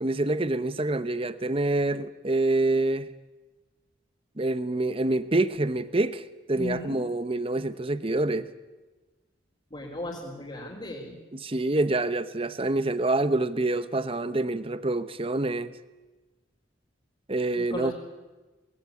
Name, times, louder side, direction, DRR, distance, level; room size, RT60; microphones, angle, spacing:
voice 1, 0.0-3.1 4.4-8.5 11.3-15.8 17.3-17.9, right 2 dB, 30° right, 14 dB, 0.9 m, -26 dB
voice 2, 6.5-7.0 9.7-11.2 17.6-17.9, left 1 dB, 30° left, -5 dB, 4.0 m, -36 dB
23.0 x 19.5 x 8.7 m, 1.2 s
head